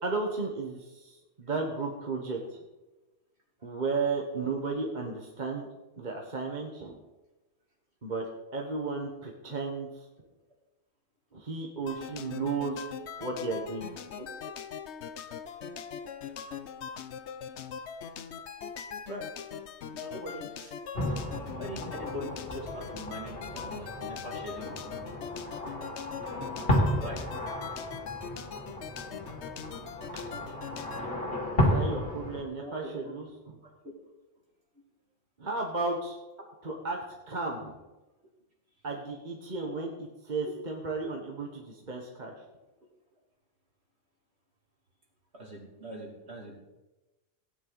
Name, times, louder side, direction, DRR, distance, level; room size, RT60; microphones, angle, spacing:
voice 1, 0.0-2.6 3.6-5.6 6.0-7.0 8.0-8.3 8.5-10.0 11.3-12.8 13.2-14.0 29.7-30.0 30.3-30.5 31.5-33.3 35.4-36.2 36.6-37.0 37.3-37.8 38.8-42.3, right 3 dB, 40° right, 0 dB, 1.4 m, -34 dB
sound 1, 11.9-31.1, left 7 dB, 65° left, 1.0 m, -41 dB
voice 2, 14.1-14.5 19.1-19.3 19.9-20.7 21.5-25.1 26.0-26.1 27.0-27.2 32.6-32.9 33.8-33.9 45.3-46.6, equal, 60° right, -1 dB, 2.9 m, -42 dB
sound 2, 20.9-32.4, left 1 dB, 50° left, 2.5 m, -33 dB
16.5 x 9.7 x 4.0 m, 1.1 s
omnidirectional pair, 1.3 m